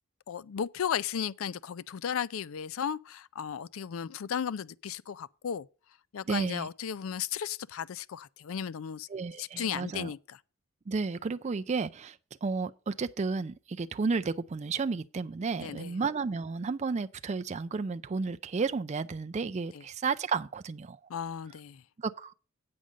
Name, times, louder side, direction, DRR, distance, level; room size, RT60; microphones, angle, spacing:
voice 1, 0.3-5.7 6.1-9.1 9.4-10.4 15.6-16.0 19.7-19.8 21.1-21.8, left 8 dB, 70° left, 0.4 m, -35 dB
voice 2, 6.3-6.7 9.1-10.1 10.9-21.0 22.0-22.3, right 4 dB, 30° right, 0.4 m, -32 dB
8.7 x 5.2 x 7.4 m
head